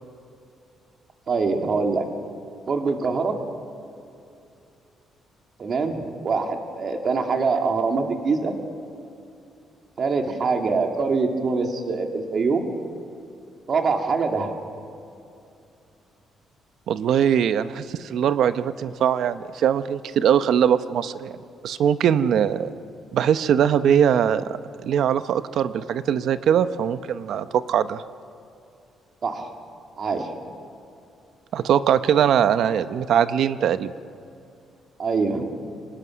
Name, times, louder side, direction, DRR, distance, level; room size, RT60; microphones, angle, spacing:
voice 1, 1.3-2.1 2.7-3.4 5.6-8.5 10.0-12.7 13.7-14.5 29.2-29.5 30.0-30.4 35.0-35.5, right 4 dB, 40° right, 3 dB, 2.3 m, -24 dB
voice 2, 16.9-21.3 21.6-22.7 23.1-28.0 31.5-33.9, right 9 dB, 65° right, 12 dB, 0.8 m, -21 dB
25.5 x 19.0 x 6.3 m, 2.6 s
cardioid pair, 145°, 0 cm